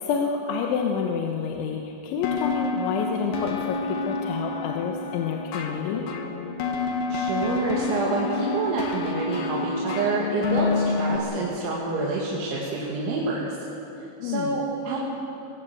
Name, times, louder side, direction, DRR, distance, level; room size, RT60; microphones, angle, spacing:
voice 1, 0.0-6.1 14.2-14.6, left 6 dB, 85° left, 1 dB, 3.6 m, -28 dB
sound 1, 2.2-11.2, left 3 dB, 60° left, 2.8 m, -28 dB
voice 2, 6.9-13.5 14.0-15.0, right 3 dB, 85° right, -4 dB, 4.6 m, -28 dB
22.5 x 18.5 x 7.9 m, 2.8 s
omnidirectional pair, 5.2 m